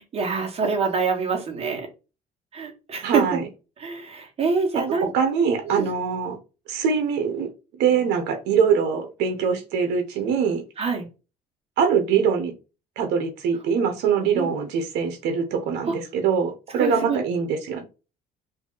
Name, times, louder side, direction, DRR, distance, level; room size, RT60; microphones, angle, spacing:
voice 1, 0.1-1.9 2.5-3.4 3.8-5.1 5.6-5.9 10.8-11.0 14.2-14.5 15.8-15.9 16.7-17.2, right 5 dB, 35° right, 1 dB, 1.3 m, -25 dB
voice 2, 3.0-3.4 4.9-6.3 6.7-7.5 7.8-10.6 11.8-12.5 13.0-17.8, right 6 dB, 85° right, 5 dB, 0.8 m, -23 dB
2.7 x 2.7 x 3.8 m, 0.30 s
cardioid pair, 110°, 17 cm